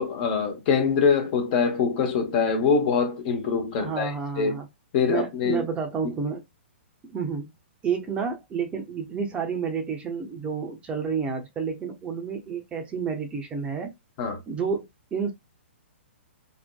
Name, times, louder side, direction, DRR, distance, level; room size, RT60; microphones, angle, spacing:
voice 1, 0.0-4.6 4.9-5.7 14.2-14.4, left 5 dB, 45° left, 0.7 m, -24 dB
voice 2, 3.8-4.7 5.0-6.4 7.0-7.5 7.8-13.9 14.5-15.3, right 6 dB, 15° right, 0.5 m, -30 dB
2.6 x 2.1 x 2.2 m
hypercardioid pair, 125°, 7 cm